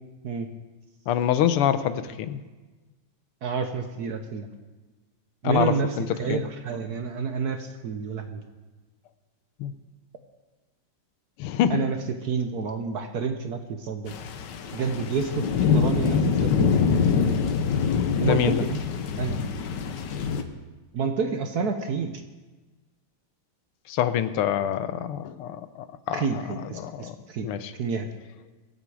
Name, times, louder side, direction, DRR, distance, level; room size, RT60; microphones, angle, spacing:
voice 1, 1.1-2.4 5.4-6.4 9.6-9.7 11.4-11.8 18.2-18.6 23.9-26.4 26.7-27.2 27.4-27.7, left 10 dB, 90° left, 13 dB, 1.7 m, -26 dB
voice 2, 3.4-4.5 5.4-8.4 11.7-12.0 12.2-14.1 14.7-16.8 18.2-18.8 19.2-19.5 20.9-22.2 26.1-27.5 27.8-28.1, right 5 dB, 60° right, 6 dB, 1.1 m, -29 dB
sound 1, 14.1-20.4, left 6 dB, 60° left, 1.4 m, -24 dB
23.0 x 8.2 x 4.8 m, 1.2 s
omnidirectional pair, 2.4 m